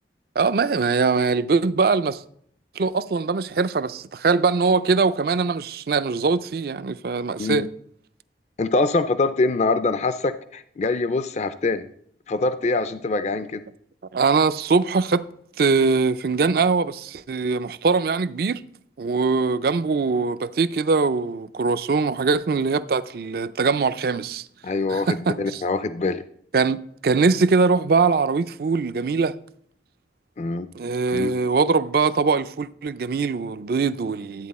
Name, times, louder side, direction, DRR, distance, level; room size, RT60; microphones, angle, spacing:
voice 1, 0.4-2.2 2.8-7.7 14.1-15.2 15.6-18.6 19.0-24.5 24.9-25.6 26.5-29.3 30.7-34.5, right 4 dB, 55° right, 0.4 m, -22 dB
voice 2, 8.6-11.9 12.3-13.6 24.6-25.1 25.4-26.2 30.4-30.7 31.1-31.3, left 3 dB, 40° left, 0.4 m, -24 dB
12.5 x 8.7 x 4.2 m
head